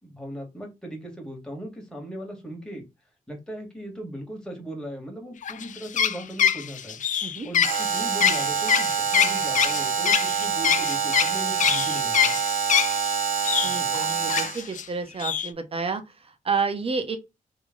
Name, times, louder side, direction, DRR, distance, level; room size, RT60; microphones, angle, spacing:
voice 1, 0.0-2.9 3.3-7.0 7.4-12.4 13.6-13.9, right 1 dB, 5° left, 1.7 m, -38 dB
sound 1, 5.4-13.1 13.4-14.8 15.2-15.5, left 8 dB, 60° left, 0.5 m, -24 dB
Alarm, 7.6-14.7, right 7 dB, 75° right, 1.2 m, -26 dB
voice 2, 13.6-17.2, right 5 dB, 40° right, 0.9 m, -30 dB
3.2 x 2.9 x 3.7 m
cardioid pair, 100°, 14 cm